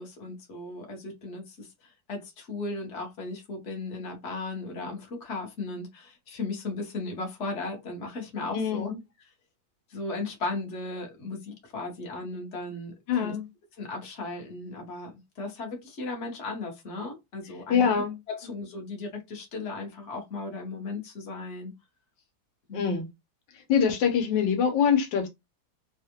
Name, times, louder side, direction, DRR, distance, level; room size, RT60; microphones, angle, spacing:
voice 1, 0.0-8.9 9.9-13.4 13.8-21.7 22.7-23.0, left 3 dB, 45° left, 1.2 m, -36 dB
voice 2, 8.5-9.0 13.1-13.5 17.7-18.2 22.7-23.1 23.7-25.3, left 7 dB, 75° left, 1.5 m, -24 dB
3.5 x 2.4 x 2.8 m
omnidirectional pair, 2.1 m